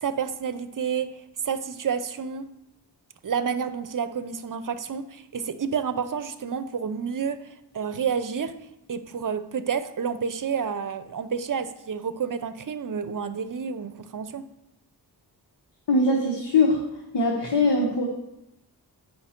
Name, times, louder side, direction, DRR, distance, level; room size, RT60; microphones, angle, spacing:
voice 1, 0.0-1.1 1.4-2.5 3.2-8.5 8.9-14.5, right 6 dB, 50° right, 11 dB, 0.7 m, -29 dB
voice 2, 15.9-16.8 17.1-18.1, left 2 dB, 85° left, -1 dB, 1.3 m, -21 dB
8.8 x 5.8 x 4.4 m, 0.86 s
cardioid pair, 70°, 41 cm